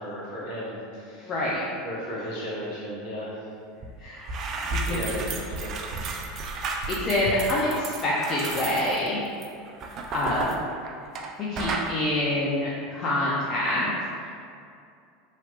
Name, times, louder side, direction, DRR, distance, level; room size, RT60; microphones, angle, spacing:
voice 1, 0.0-1.3 1.8-3.4 4.8-5.7, equal, 60° left, -7 dB, 1.1 m, -35 dB
voice 2, 1.3-1.7 4.0-4.2 4.7-5.2 6.6-9.2 9.8-10.5 11.4-13.9 14.2-14.3, left 1 dB, 40° left, -7 dB, 0.5 m, -27 dB
sound 1, 3.8-3.9 4.2-11.3 11.6-11.9, right 3 dB, 45° right, 0.3 m, -32 dB
3.2 x 2.8 x 2.4 m, 2.4 s
hypercardioid pair, 80°, 0 cm